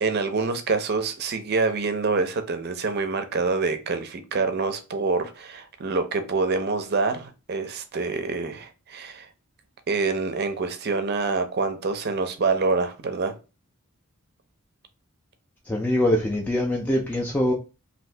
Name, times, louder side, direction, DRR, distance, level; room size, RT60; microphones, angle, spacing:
voice 1, 0.0-9.3 9.9-13.3, right 4 dB, 45° right, 0.5 m, -26 dB
voice 2, 15.7-17.5, left 1 dB, 5° left, 0.3 m, -23 dB
2.7 x 2.6 x 3.2 m
head